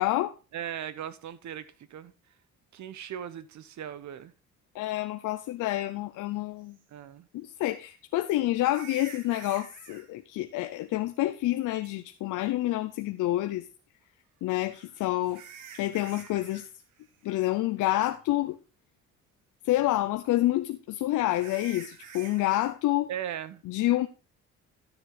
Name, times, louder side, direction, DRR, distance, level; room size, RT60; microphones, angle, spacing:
voice 1, 0.0-0.3 4.7-6.8 7.3-13.7 14.4-16.6 17.2-18.6 19.6-23.1 23.7-24.1, left 15 dB, 85° left, 0.7 m, -28 dB
voice 2, 0.5-2.1 2.7-4.3 6.9-7.3 23.1-23.6, right 10 dB, 65° right, 1.1 m, -38 dB
Cat Bird, 6.7-6.8 8.6-10.0 11.8-11.9 14.5-16.7 16.9-17.3 17.7-17.8 18.4-18.5 21.3-22.7, right 7 dB, 90° right, 1.8 m, -48 dB
12.5 x 7.1 x 3.8 m
cardioid pair, 90°, 30 cm